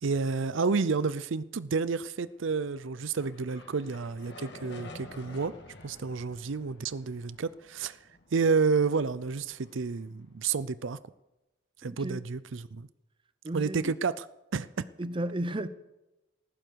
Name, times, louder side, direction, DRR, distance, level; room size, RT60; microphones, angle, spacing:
voice 1, 0.0-5.5 5.8-8.0 8.3-11.0 11.8-12.9 13.5-14.3 14.5-14.7, right 5 dB, 65° right, 0.5 m, -30 dB
sound 1, 2.4-10.8, left 2 dB, 55° left, 2.2 m, -51 dB
voice 2, 11.9-12.2 13.4-13.9 15.0-15.7, right 1 dB, 25° right, 0.7 m, -33 dB
19.0 x 15.0 x 4.7 m
head